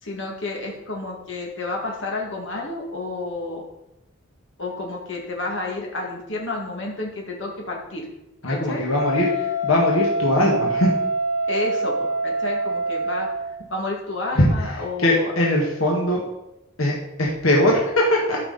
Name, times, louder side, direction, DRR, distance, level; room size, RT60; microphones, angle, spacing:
voice 1, 0.0-3.6 4.6-8.1 8.5-8.8 11.5-13.3 13.7-15.3, left 2 dB, 65° left, -1 dB, 2.2 m, -30 dB
voice 2, 8.4-10.9 14.3-14.5 15.0-16.2 16.8-18.4, left 1 dB, 85° left, -2 dB, 1.7 m, -20 dB
Wind instrument woodwind instrument, 8.9-13.6, right 1 dB, 80° right, 2.3 m, -25 dB
12.5 x 5.8 x 4.1 m, 0.90 s
head